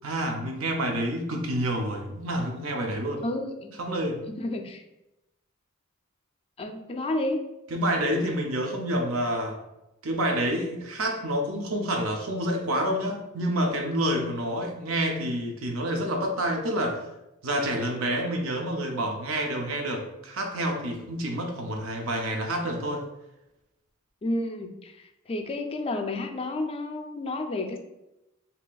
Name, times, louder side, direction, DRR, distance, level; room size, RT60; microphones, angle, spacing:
voice 1, 0.0-3.2 3.8-4.2 7.7-9.6 10.0-17.0 17.4-23.1, right 1 dB, 70° right, 3 dB, 0.5 m, -28 dB
voice 2, 3.2-3.7 4.3-4.8 6.6-7.4 24.2-27.8, left 2 dB, 25° left, 5 dB, 0.3 m, -31 dB
3.9 x 2.8 x 2.3 m, 0.92 s
head